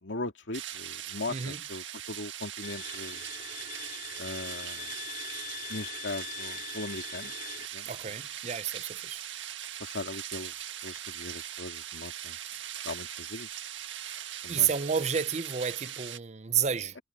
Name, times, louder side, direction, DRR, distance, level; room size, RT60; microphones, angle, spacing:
voice 1, 0.0-3.2 4.2-4.9 5.7-7.3 7.7-8.1 9.8-10.5 10.8-12.4 12.8-13.5 14.4-14.7, left 2 dB, 80° left, 2.3 m, -39 dB
sound 1, 0.5-16.2, right 11 dB, 75° right, 1.7 m, -40 dB
voice 2, 1.3-1.6 7.9-9.2 14.5-17.0, right 7 dB, 35° right, 0.7 m, -30 dB
Bowed string instrument, 2.6-7.7, left 11 dB, 50° left, 5.3 m, -43 dB
head